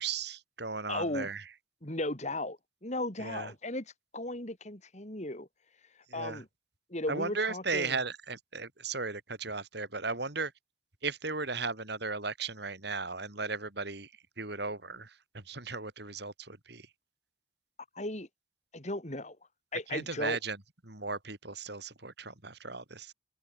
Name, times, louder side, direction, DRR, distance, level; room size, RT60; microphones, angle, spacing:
voice 1, 0.0-1.5 3.2-3.5 6.1-6.4 7.1-10.5 11.0-16.9 19.9-23.1, right 4 dB, 55° right, 3.4 m, -36 dB
voice 2, 0.9-1.3 1.8-3.8 4.1-5.5 6.1-6.5 6.9-7.9 17.9-18.3 18.7-19.4 19.7-20.4, left 1 dB, 35° left, 3.3 m, -36 dB
open air
head